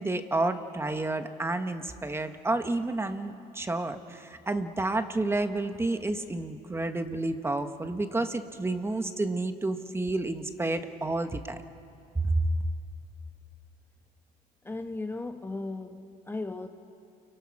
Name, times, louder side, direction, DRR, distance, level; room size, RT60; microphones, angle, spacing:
voice 1, 0.0-11.6 12.1-12.5, right 2 dB, 15° right, 8 dB, 1.3 m, -30 dB
voice 2, 14.6-16.7, left 2 dB, 15° left, 6 dB, 1.0 m, -36 dB
29.5 x 23.5 x 6.0 m, 2.5 s
cardioid pair, 110°, 17 cm